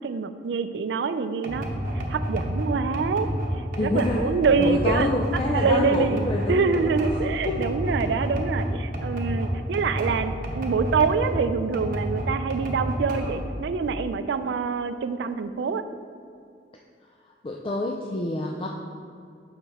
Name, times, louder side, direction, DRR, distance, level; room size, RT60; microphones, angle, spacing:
voice 1, 0.0-1.7 2.1-3.3 3.6-5.1 5.5-15.8, right 5 dB, 75° right, 11 dB, 0.3 m, -25 dB
sound 1, 1.4-11.4 11.7-13.5, equal, 50° right, 1.0 m, -29 dB
voice 2, 3.8-4.3 4.6-6.9 7.4-7.6 17.4-18.7, left 2 dB, 30° left, 0 dB, 0.4 m, -27 dB
7.2 x 5.5 x 3.4 m, 2.4 s
head